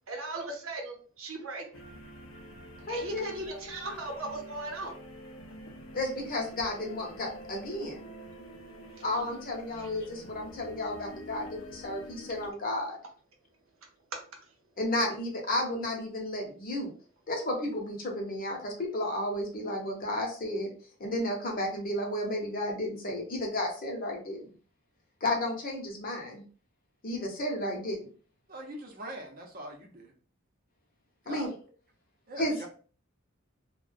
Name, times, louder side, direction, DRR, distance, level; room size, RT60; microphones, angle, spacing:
voice 1, 0.1-1.8 2.9-4.9 9.0-9.1 9.8-9.9, right 2 dB, 90° right, 2 dB, 0.7 m, -38 dB
sound 1, 1.7-12.5, equal, 80° left, 0.5 m, -47 dB
voice 2, 2.9-3.3 5.9-8.0 9.0-13.0 14.8-16.9 17.3-20.7 21.0-24.5 25.2-26.4 27.0-28.0 31.3-31.5 32.4-32.7, left 1 dB, 45° left, 1 dB, 0.7 m, -32 dB
voice 3, 28.5-30.1 31.2-31.5 32.3-32.7, right 1 dB, 45° right, 2 dB, 0.6 m, -42 dB
2.3 x 2.1 x 2.5 m, 0.40 s
head